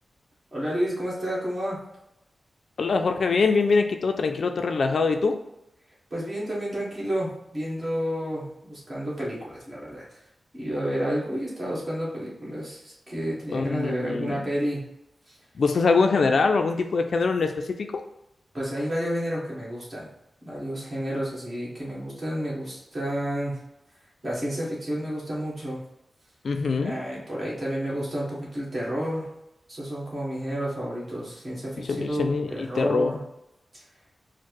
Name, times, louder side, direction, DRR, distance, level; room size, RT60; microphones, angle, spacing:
voice 1, 0.5-1.8 6.1-10.0 10.5-14.8 15.3-15.4 18.5-20.1 20.4-23.6 24.2-25.8 26.8-29.3 29.7-33.2 33.7-33.8, equal, 30° right, -6 dB, 1.5 m, -30 dB
voice 2, 2.8-5.4 13.5-14.5 15.6-18.0 26.4-27.0 31.8-33.2, left 4 dB, 60° left, 6 dB, 0.3 m, -24 dB
4.4 x 2.1 x 4.6 m, 0.86 s
wide cardioid pair, 150°, 0 cm